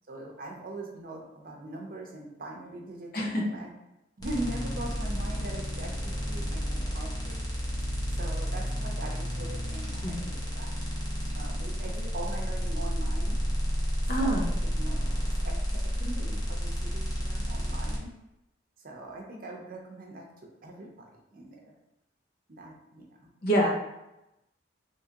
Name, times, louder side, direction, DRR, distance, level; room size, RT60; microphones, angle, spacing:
voice 1, 0.1-3.7 4.2-7.4 8.1-10.7 11.3-13.4 14.1-15.1 15.4-18.1 18.8-21.7 22.5-23.3, right 2 dB, 50° right, 1 dB, 0.6 m, -41 dB
sound 1, 4.2-18.0, equal, 20° left, 0.8 m, -31 dB
voice 2, 14.1-14.5 23.4-23.7, right 1 dB, 55° left, -2 dB, 0.7 m, -26 dB
3.5 x 2.9 x 2.8 m, 0.91 s
head